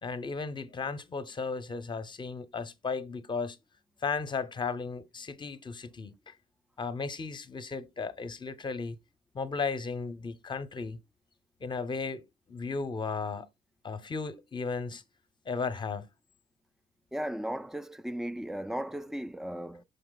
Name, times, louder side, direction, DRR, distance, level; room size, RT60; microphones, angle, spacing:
voice 1, 0.0-3.6 4.0-6.3 6.8-9.0 9.3-11.0 11.6-12.2 12.5-13.5 13.8-15.0 15.5-16.1, left 4 dB, 25° left, 0.7 m, -35 dB
voice 2, 17.1-19.8, right 1 dB, 5° right, 0.3 m, -36 dB
6.7 x 4.5 x 3.9 m
cardioid pair, 110°, 17 cm